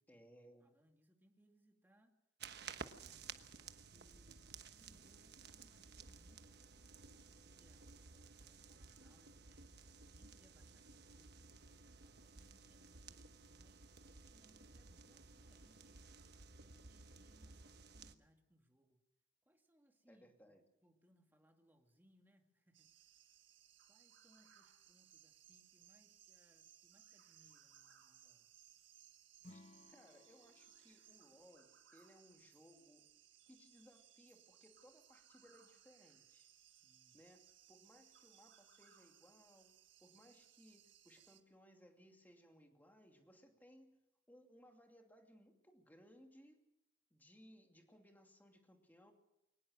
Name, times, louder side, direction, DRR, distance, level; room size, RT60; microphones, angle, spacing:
voice 1, 0.1-0.8 20.1-20.6 29.5-33.1 33.5-36.5 37.1-44.0 44.3-46.6 47.1-49.1, equal, 10° left, 3 dB, 2.6 m, -65 dB
voice 2, 0.6-2.2 2.6-4.4 4.8-9.6 10.0-13.8 14.3-16.1 16.5-19.0 19.4-20.6 20.8-23.1 23.9-28.5 36.7-37.2, equal, 10° right, 3 dB, 2.2 m, -73 dB
sound 1, 2.4-18.2, right 5 dB, 60° right, 1.2 m, -56 dB
sound 2, 22.7-41.4, right 10 dB, 85° right, 1.8 m, -66 dB
Acoustic guitar / Strum, 29.4-32.7, left 2 dB, 40° left, 0.7 m, -64 dB
23.0 x 19.5 x 6.5 m, 0.88 s
head